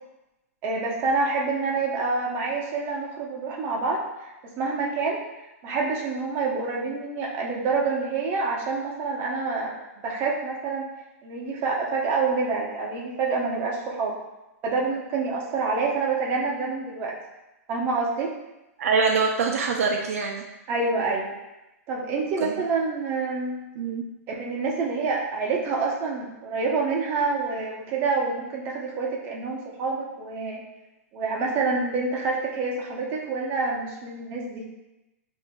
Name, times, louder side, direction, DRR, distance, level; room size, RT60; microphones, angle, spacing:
voice 1, 0.6-5.2 5.6-9.7 10.0-10.9 11.2-14.1 14.6-17.1 17.7-18.3 20.7-21.3 21.9-23.6 24.3-30.6 31.1-34.6, right 4 dB, 25° right, -2 dB, 0.8 m, -27 dB
voice 2, 18.8-20.4 22.4-22.5 23.8-24.0, right 5 dB, 65° right, 1 dB, 0.5 m, -24 dB
7.1 x 2.7 x 2.2 m, 0.98 s
hypercardioid pair, 155°, 8 cm